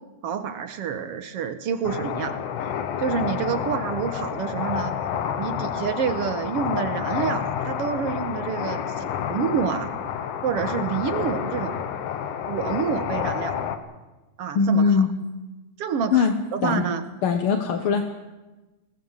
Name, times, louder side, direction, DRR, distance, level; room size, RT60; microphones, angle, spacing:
voice 1, 0.2-2.4 3.0-5.0 5.4-9.9 10.4-11.8 12.5-13.6 14.4-15.0 15.8-17.0, right 7 dB, 60° right, 9 dB, 1.7 m, -28 dB
sound 1, 1.8-13.8, left 8 dB, 85° left, 2.6 m, -29 dB
voice 2, 14.5-15.1 16.1-16.3 16.6-16.8 17.2-18.0, left 6 dB, 60° left, 6 dB, 1.6 m, -20 dB
21.0 x 17.5 x 7.4 m, 1.1 s
omnidirectional pair, 3.5 m